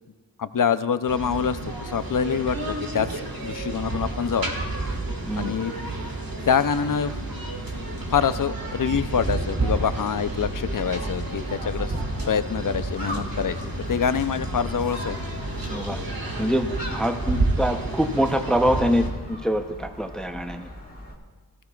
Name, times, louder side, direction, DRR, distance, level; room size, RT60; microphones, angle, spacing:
voice 1, 0.4-3.1 3.4-4.5 5.4-5.7 6.4-7.2 8.1-11.9 12.3-13.6 13.9-15.2, left 7 dB, 50° left, 13 dB, 0.6 m, -25 dB
sound 1, 1.1-19.1, right 2 dB, 55° right, 1.9 m, -30 dB
Gull seagull, 9.7-21.1, left 1 dB, 20° left, 2.2 m, -39 dB
voice 2, 15.7-16.0 16.4-16.7 16.9-20.7, equal, ahead, 6 dB, 0.7 m, -25 dB
17.5 x 15.0 x 2.4 m, 1.3 s
wide cardioid pair, 55°, 41 cm